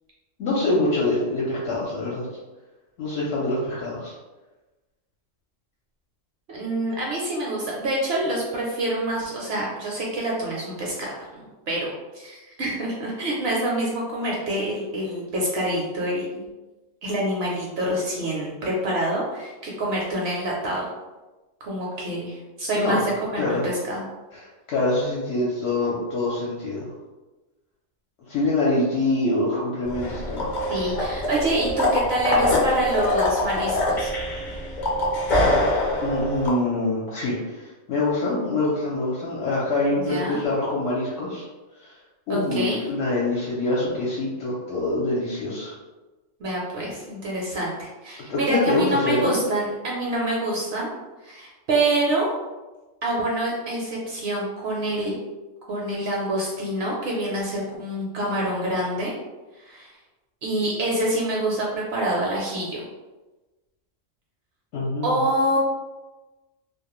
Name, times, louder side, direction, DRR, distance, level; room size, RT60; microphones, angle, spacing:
voice 1, 0.4-2.3 3.0-4.1 22.7-23.0 23.4-23.7 24.3-26.9 28.3-30.7 36.0-41.4 41.8-41.9 42.3-45.7 48.3-49.3 64.7-65.2, left 2 dB, 70° left, -6 dB, 0.9 m, -25 dB
voice 2, 6.5-11.9 12.1-16.5 17.0-20.9 21.6-24.0 30.7-34.1 40.0-40.4 42.3-42.8 46.4-50.9 51.2-52.3 53.0-55.1 55.7-59.1 59.6-59.9 60.4-62.8 65.0-65.6, right 1 dB, 65° right, -3 dB, 0.7 m, -26 dB
sound 1, 29.8-36.5, left 1 dB, 50° left, 0.7 m, -24 dB
2.3 x 2.1 x 2.9 m, 1.1 s
omnidirectional pair, 1.3 m